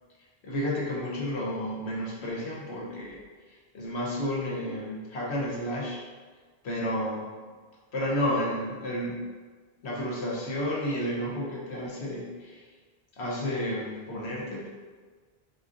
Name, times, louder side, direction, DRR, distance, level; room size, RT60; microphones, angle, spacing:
voice 1, 0.4-3.2 3.5-6.0 6.6-7.2 7.9-9.2 9.8-12.6 13.2-14.7, left 1 dB, 90° left, -4 dB, 1.2 m, -31 dB
4.4 x 3.8 x 2.5 m, 1.4 s
omnidirectional pair, 1.1 m